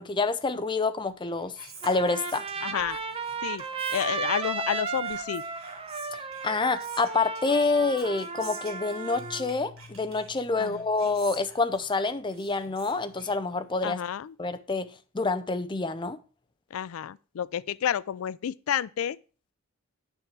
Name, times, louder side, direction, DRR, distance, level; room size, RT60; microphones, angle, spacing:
voice 1, 0.0-1.6 1.8-2.5 6.1-14.0 14.4-14.9 15.1-16.2, left 3 dB, 25° left, 0.6 m, -27 dB
Whispering, 1.1-14.0, right 5 dB, 85° right, 2.6 m, -50 dB
Trumpet, 1.8-9.5, right 4 dB, 30° right, 0.8 m, -34 dB
voice 2, 2.6-3.0 3.4-3.6 3.9-5.4 10.6-10.8 13.8-14.3 16.7-19.2, left 9 dB, 90° left, 0.4 m, -30 dB
Keyboard (musical), 9.1-12.2, left 4 dB, 60° left, 1.2 m, -52 dB
9.0 x 5.9 x 4.6 m
head